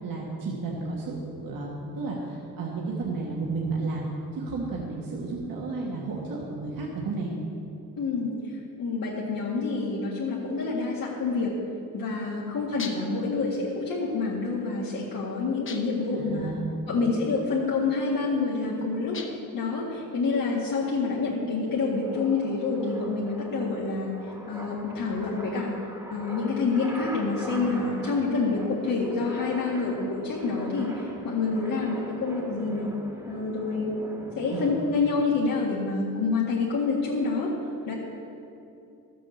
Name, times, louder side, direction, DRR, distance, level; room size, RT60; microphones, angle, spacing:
voice 1, 0.0-1.7 2.0-4.1 4.4-7.3 16.1-16.6 17.0-17.1 34.5-34.7, right 3 dB, 85° right, -3 dB, 1.7 m, -32 dB
voice 2, 8.0-8.3 8.8-11.5 11.9-16.5 16.9-19.1 19.5-24.1 24.5-25.7 26.1-32.9 33.3-33.9 34.4-37.5 37.9-38.0, left 4 dB, 85° left, -5 dB, 1.9 m, -27 dB
sound 1, 12.8-13.2 15.7-16.1 19.1-19.6, left 5 dB, 40° left, 0.9 m, -40 dB
sound 2, 20.0-35.4, right 1 dB, 10° right, 1.2 m, -42 dB
13.5 x 7.6 x 7.1 m, 2.7 s
wide cardioid pair, 170°, 33 cm